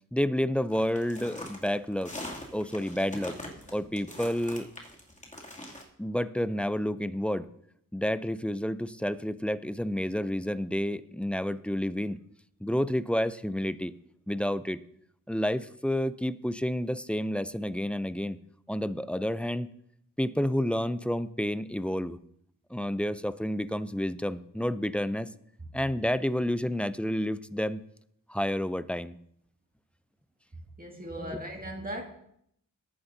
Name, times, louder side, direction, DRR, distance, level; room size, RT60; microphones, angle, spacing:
voice 1, 0.1-2.1 2.5-3.4 3.7-4.7 6.0-7.5 7.9-12.2 12.6-13.9 14.3-14.8 15.3-18.4 18.7-19.7 20.2-22.2 22.7-25.3 25.7-27.8 28.3-29.2 31.2-31.4, equal, 5° left, 14 dB, 0.4 m, -30 dB
sound 1, 0.7-5.8, left 1 dB, 20° left, 2.6 m, -42 dB
voice 2, 30.8-32.0, equal, 25° right, 1 dB, 2.1 m, -38 dB
18.5 x 9.8 x 2.7 m, 0.71 s
cardioid pair, 75°, 36 cm